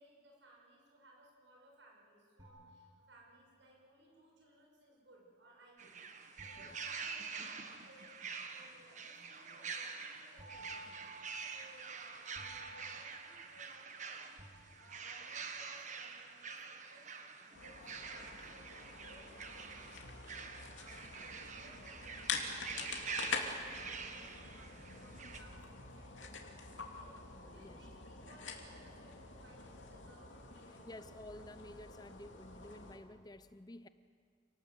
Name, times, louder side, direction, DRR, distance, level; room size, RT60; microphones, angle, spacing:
voice 1, 0.0-6.0 6.4-13.9 14.2-31.1, right 1 dB, 75° right, -2 dB, 7.1 m, -63 dB
sound 1, 2.4-3.6 6.4-8.0 10.4-14.0 14.4-15.3, right 1 dB, 20° right, 2.9 m, -56 dB
sound 2, 5.8-25.4, right 5 dB, 40° right, 1.5 m, -46 dB
sound 3, 17.5-33.0, left 4 dB, 80° left, 2.8 m, -46 dB
voice 2, 21.0-21.4 27.3-27.8 30.8-33.9, left 1 dB, 20° left, 13 dB, 0.6 m, -53 dB
28.5 x 19.5 x 8.1 m, 2.1 s
head